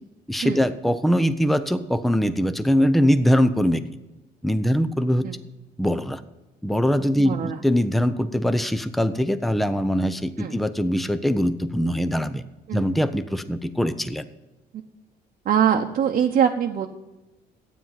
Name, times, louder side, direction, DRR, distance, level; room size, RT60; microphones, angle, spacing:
voice 1, 0.3-3.8 4.4-5.3 5.8-6.2 6.6-12.4 12.7-14.2, equal, ahead, 12 dB, 0.6 m, -22 dB
voice 2, 7.2-7.6 10.4-10.6 12.7-12.9 14.7-14.8 15.4-16.9, right 8 dB, 50° right, 2 dB, 0.9 m, -23 dB
12.0 x 9.4 x 5.8 m, 1.1 s
cardioid pair, 110°, 17 cm